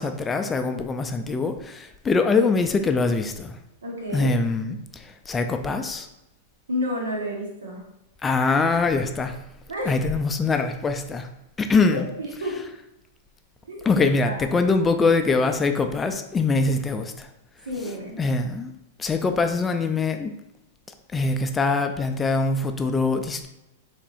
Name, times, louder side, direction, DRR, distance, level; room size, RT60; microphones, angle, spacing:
voice 1, 0.0-3.6 4.1-6.1 8.2-9.4 9.9-11.3 11.6-12.0 13.8-17.3 17.8-18.7 19.0-20.4 21.1-23.5, left 3 dB, 15° left, 7 dB, 0.3 m, -23 dB
voice 2, 3.8-4.3 6.7-7.8 9.7-10.0 11.9-12.6 13.6-13.8 14.2-14.4 17.6-18.2, left 1 dB, 85° right, -2 dB, 1.3 m, -30 dB
4.1 x 3.5 x 2.5 m, 0.87 s
hypercardioid pair, 115°, 0 cm